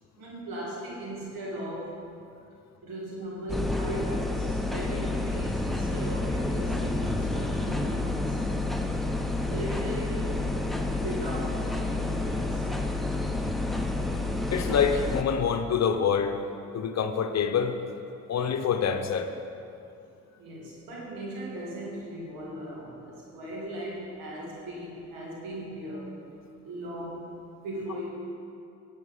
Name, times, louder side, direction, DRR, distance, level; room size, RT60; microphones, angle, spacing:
voice 1, 0.2-2.0 2.8-8.4 9.5-10.3 10.8-12.7 20.4-26.2 26.6-27.3 27.6-28.1, right 1 dB, 75° right, -4 dB, 2.4 m, -38 dB
sound 1, 3.5-15.2, left 2 dB, ahead, 0.9 m, -29 dB
voice 2, 14.5-16.4 16.7-17.8 18.3-19.3, left 7 dB, 50° left, 7 dB, 0.9 m, -26 dB
10.5 x 8.6 x 5.6 m, 2.6 s
hypercardioid pair, 55°, 34 cm